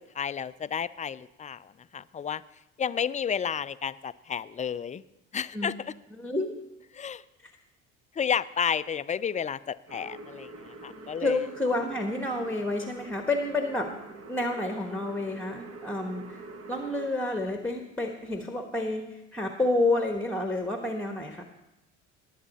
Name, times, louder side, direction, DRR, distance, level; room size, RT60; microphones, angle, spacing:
voice 1, 0.1-2.4 2.8-5.0 5.3-5.9 6.9-7.2 8.2-11.4, left 7 dB, 20° left, 16 dB, 0.4 m, -31 dB
voice 2, 6.2-6.5 7.4-7.5 10.9-13.9 14.3-16.4 16.7-21.4, left 2 dB, 5° left, 4 dB, 1.2 m, -29 dB
sound 1, 9.9-17.1, right 3 dB, 45° right, 1.4 m, -45 dB
19.5 x 7.4 x 4.2 m, 0.92 s
hypercardioid pair, 65°, 36 cm